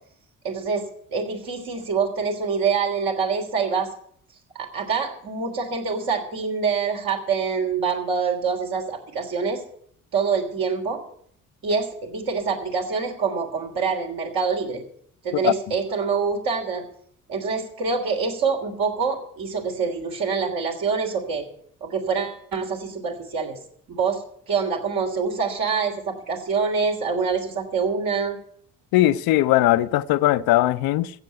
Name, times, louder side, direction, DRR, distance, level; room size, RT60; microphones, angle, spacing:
voice 1, 0.4-0.8 1.1-3.9 4.6-9.6 10.1-11.0 11.6-14.8 15.2-16.8 17.3-21.5 21.8-23.6 23.9-28.4, right 5 dB, 60° right, 3.4 m, -25 dB
voice 2, 28.9-31.1, left 15 dB, 60° left, 0.7 m, -19 dB
15.5 x 7.5 x 8.0 m
figure-of-eight pair, 45°, 40 cm